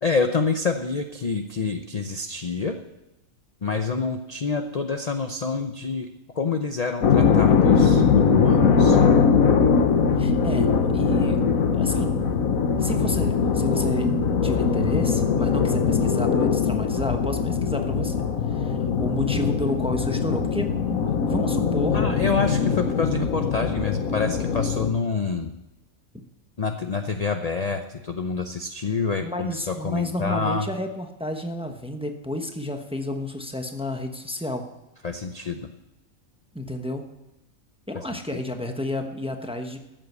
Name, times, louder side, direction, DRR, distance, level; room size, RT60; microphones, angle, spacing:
voice 1, 0.0-2.8 3.6-6.1 6.3-9.0 21.9-25.5 26.6-30.7 35.0-35.7 37.9-38.0, left 4 dB, 40° left, 6 dB, 0.6 m, -27 dB
sound 1, 7.0-24.9, left 6 dB, 85° left, 1.5 m, -21 dB
voice 2, 10.2-11.4 11.7-12.2 12.8-22.0 29.2-34.6 36.5-37.0 37.9-39.8, left 1 dB, 5° right, 5 dB, 0.9 m, -31 dB
13.5 x 7.6 x 8.1 m, 0.95 s
omnidirectional pair, 1.4 m